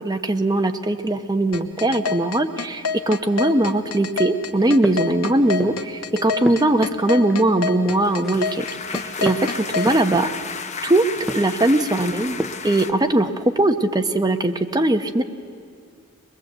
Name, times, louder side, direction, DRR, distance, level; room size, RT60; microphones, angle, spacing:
voice 1, 0.0-8.7 8.9-10.3 10.8-11.0 11.3-15.2, right 1 dB, 20° right, 6 dB, 0.9 m, -20 dB
sound 1, 1.5-9.9, left 5 dB, 75° left, 1.1 m, -26 dB
sound 2, 4.5-5.9 6.2-7.8 8.0-10.6 11.1-12.8, equal, ahead, 0.5 m, -33 dB
sound 3, 7.9-12.9, left 5 dB, 35° left, 0.9 m, -33 dB
22.0 x 21.5 x 7.9 m, 2.1 s
head